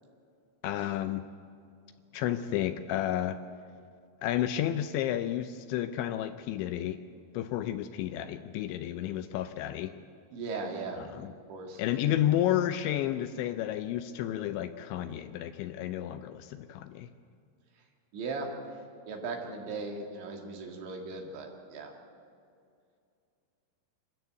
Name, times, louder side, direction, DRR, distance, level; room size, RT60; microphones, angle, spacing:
voice 1, 0.6-1.2 2.1-3.4 4.2-7.0 7.3-9.9 11.0-11.3 11.8-17.1, left 12 dB, 80° left, 10 dB, 2.8 m, -31 dB
voice 2, 10.3-11.0 11.5-11.8 18.1-18.5 19.0-21.9, right 3 dB, 70° right, 1 dB, 4.4 m, -38 dB
26.0 x 13.5 x 8.0 m, 2.4 s
omnidirectional pair, 5.6 m